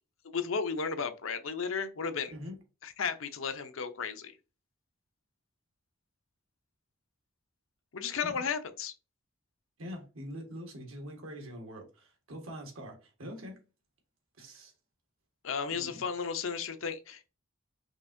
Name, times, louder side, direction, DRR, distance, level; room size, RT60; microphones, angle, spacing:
voice 1, 0.2-2.3 2.8-4.3 7.9-8.9 15.4-17.3, left 5 dB, 75° left, 0.7 m, -34 dB
voice 2, 9.8-13.6 14.4-14.7 15.7-16.0, equal, 85° right, 1.5 m, -44 dB
5.3 x 3.4 x 2.6 m
head